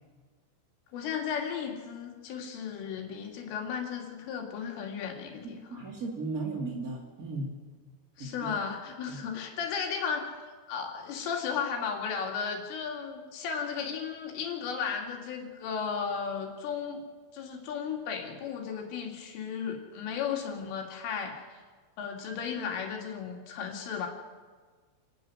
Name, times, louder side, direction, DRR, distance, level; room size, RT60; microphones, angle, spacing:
voice 1, 0.9-5.8 8.2-10.3 10.7-17.0 17.3-21.6 22.0-24.1, left 6 dB, 75° left, 1 dB, 5.2 m, -35 dB
voice 2, 5.7-7.5 8.2-8.5 9.1-9.2, right 3 dB, 40° right, -1 dB, 1.2 m, -36 dB
28.0 x 13.0 x 9.6 m, 1.5 s
omnidirectional pair, 5.9 m